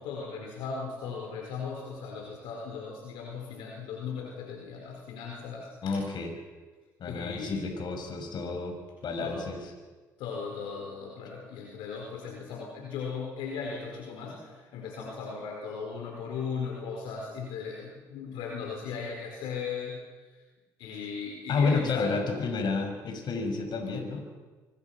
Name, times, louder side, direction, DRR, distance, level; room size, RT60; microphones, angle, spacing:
voice 1, 0.0-6.0 7.0-7.7 9.2-9.5 10.2-20.0 20.3-20.4 20.8-22.1, left 5 dB, 75° left, 0 dB, 4.7 m, -37 dB
voice 2, 5.8-6.3 7.0-9.6 21.5-24.2, left 4 dB, 60° left, 5 dB, 6.0 m, -30 dB
26.0 x 24.0 x 6.0 m, 1.3 s
hypercardioid pair, 55°, 9 cm